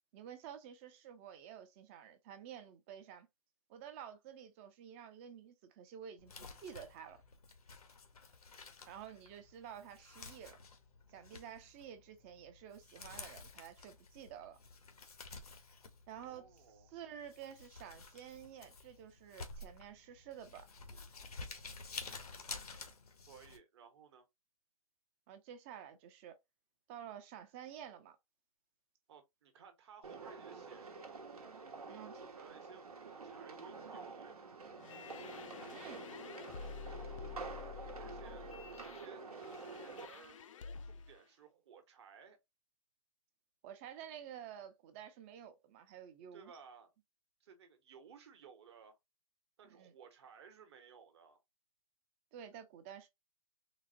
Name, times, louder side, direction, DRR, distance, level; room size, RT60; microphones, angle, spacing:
voice 1, 0.1-3.3 3.7-7.2 8.9-10.6 11.1-14.6 16.1-16.5 16.9-20.7 25.3-26.4 26.9-28.2 31.9-32.1 35.7-36.0 43.6-46.5 49.8-49.9 52.3-53.1, right 9 dB, 20° right, 0.4 m, -51 dB
Crumpling crinkling, 6.2-23.6, left 4 dB, 90° left, 0.9 m, -51 dB
voice 2, 16.2-16.9 23.3-24.3 29.1-31.2 31.9-34.4 38.0-38.5 38.8-39.2 39.6-40.5 40.9-42.4 46.3-46.9 47.4-49.0 49.6-51.4, right 6 dB, 45° right, 1.0 m, -58 dB
sound 1, 30.0-40.1, right 4 dB, 80° right, 0.9 m, -48 dB
sound 2, 34.8-41.2, left 6 dB, 60° left, 0.5 m, -49 dB
3.9 x 2.1 x 2.6 m
hypercardioid pair, 145°, 19 cm